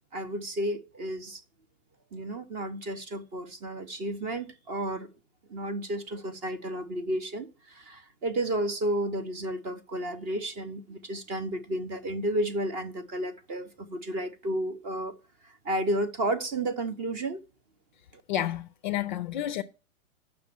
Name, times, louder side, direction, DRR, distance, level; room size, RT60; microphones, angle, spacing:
voice 1, 0.1-1.4 2.1-5.1 5.5-15.1 15.4-17.4, right 1 dB, 20° right, 0.6 m, -32 dB
voice 2, 18.3-19.6, left 12 dB, 35° left, 0.4 m, -30 dB
7.3 x 6.1 x 7.2 m
hypercardioid pair, 145°, 42 cm